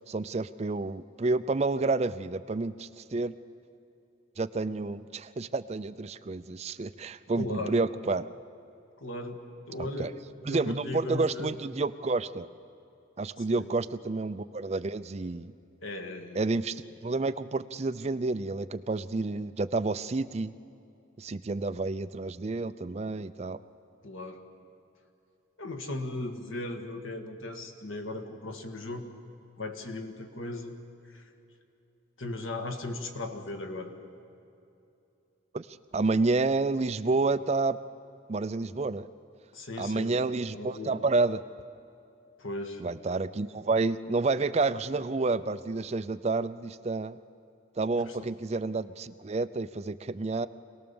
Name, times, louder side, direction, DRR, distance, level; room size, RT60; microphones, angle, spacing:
voice 1, 0.1-3.3 4.4-8.3 9.8-10.1 10.4-12.5 13.2-15.5 16.4-20.5 21.2-23.6 35.5-35.7 35.9-37.8 38.3-39.1 39.8-41.4 42.8-47.2 47.8-50.5, right 3 dB, 35° right, 13 dB, 0.4 m, -29 dB
voice 2, 7.4-7.8 9.0-9.4 9.7-10.2 10.5-11.5 13.5-13.7 15.8-16.4 24.0-24.4 25.6-29.1 29.6-30.7 31.1-31.3 32.2-33.9 39.5-40.1 40.5-41.0 42.4-42.8 48.0-48.3, left 2 dB, 85° left, 5 dB, 1.9 m, -37 dB
26.0 x 18.5 x 7.1 m, 2.8 s
head